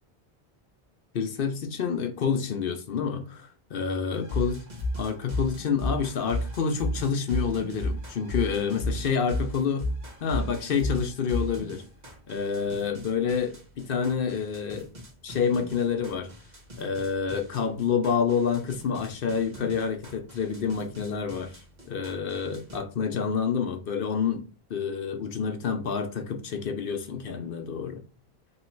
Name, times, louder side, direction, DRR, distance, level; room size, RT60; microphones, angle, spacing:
voice 1, 1.1-4.6 5.0-9.9 10.2-11.8 12.3-14.9 15.2-16.3 16.8-21.6 21.8-24.4 24.7-28.0, left 6 dB, 65° left, 0.8 m, -28 dB
sound 1, 4.1-22.8, left 1 dB, 45° right, 1.4 m, -35 dB
3.1 x 3.0 x 4.4 m
omnidirectional pair, 1.0 m